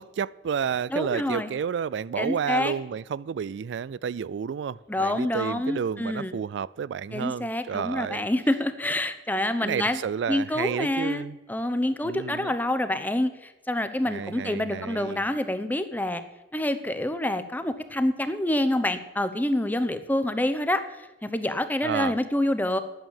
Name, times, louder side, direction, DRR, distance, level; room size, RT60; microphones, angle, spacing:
voice 1, 0.0-8.3 9.6-11.4 12.0-12.5 14.1-15.2 21.8-22.1, right 7 dB, 85° right, 0.3 m, -31 dB
voice 2, 0.9-1.5 2.2-2.7 4.9-6.4 7.1-10.0 10.3-11.2 11.5-16.2 16.5-22.8, left 1 dB, 10° left, 0.8 m, -27 dB
11.0 x 8.9 x 7.2 m
head